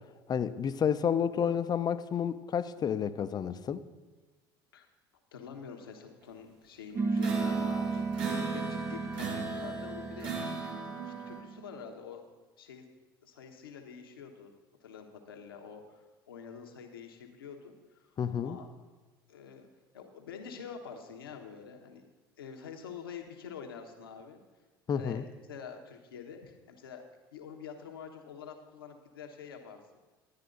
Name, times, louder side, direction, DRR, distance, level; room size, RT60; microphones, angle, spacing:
voice 1, 0.3-3.8 18.2-18.6 24.9-25.2, left 8 dB, 35° left, 12 dB, 0.6 m, -30 dB
voice 2, 5.3-10.6 11.0-12.2 12.6-12.8 13.2-14.5 14.8-18.1 18.3-18.7 19.3-19.7 19.9-22.1 22.4-24.4 24.9-27.0 27.3-29.8, left 6 dB, 90° left, 3 dB, 1.2 m, -47 dB
sound 1, 7.0-11.9, right 4 dB, 20° right, 0.4 m, -34 dB
sound 2, 7.2-11.4, right 3 dB, 70° right, 2.9 m, -37 dB
11.5 x 9.8 x 3.9 m, 1.2 s
hypercardioid pair, 75°, 12 cm